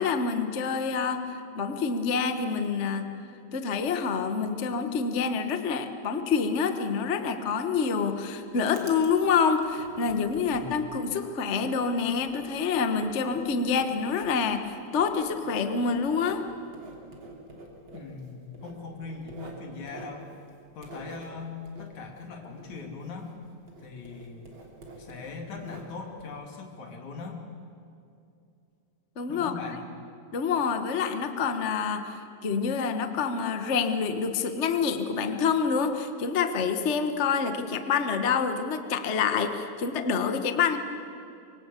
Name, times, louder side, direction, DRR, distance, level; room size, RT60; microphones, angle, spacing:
voice 1, 0.0-3.1 3.5-16.4 29.2-29.6 30.3-40.8, left 5 dB, 85° left, 7 dB, 0.6 m, -27 dB
Writing, 8.1-23.4 23.7-26.2, right 2 dB, 40° right, 3.7 m, -48 dB
voice 2, 10.5-11.0 17.9-20.3 20.8-23.3 23.8-24.5 25.0-27.4 29.3-29.8, left 4 dB, 65° left, 2 dB, 4.0 m, -40 dB
24.5 x 24.5 x 8.4 m, 2.6 s
omnidirectional pair, 3.7 m